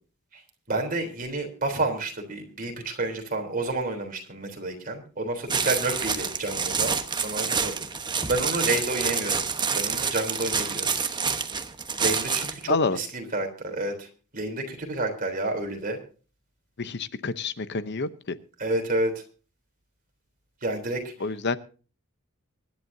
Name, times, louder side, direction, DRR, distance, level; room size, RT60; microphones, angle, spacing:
voice 1, 0.7-7.0 7.2-7.8 8.3-9.4 9.7-10.9 12.0-14.1 14.3-16.0 18.6-19.1 20.6-21.1, right 2 dB, 40° right, 4 dB, 3.5 m, -29 dB
sound 1, 5.5-12.6, right 5 dB, 20° right, 1.1 m, -28 dB
voice 2, 12.7-13.0 16.8-18.1 21.2-21.6, left 4 dB, 55° left, 13 dB, 0.8 m, -27 dB
24.5 x 11.0 x 2.7 m, 0.37 s
head